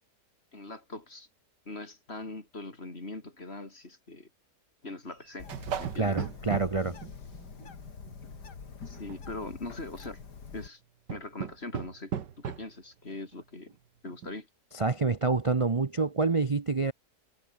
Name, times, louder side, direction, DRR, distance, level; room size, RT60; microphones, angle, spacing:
voice 1, 0.5-1.3 1.7-4.3 4.8-5.5 5.8-6.2 8.9-10.2 10.5-10.8 11.1-13.8 14.0-14.5, left 2 dB, 35° left, 3.6 m, -41 dB
sound 1, 5.1-7.7 8.1-8.5 9.0-9.2 9.8-10.1 11.1-12.7 13.3-13.4 13.7-13.8 14.1-14.4, right 8 dB, 85° right, 2.1 m, -37 dB
Bird, 5.4-10.7, left 5 dB, 70° left, 3.0 m, -45 dB
voice 2, 5.9-7.0 14.7-16.9, right 4 dB, 40° right, 0.4 m, -27 dB
omnidirectional pair, 1.8 m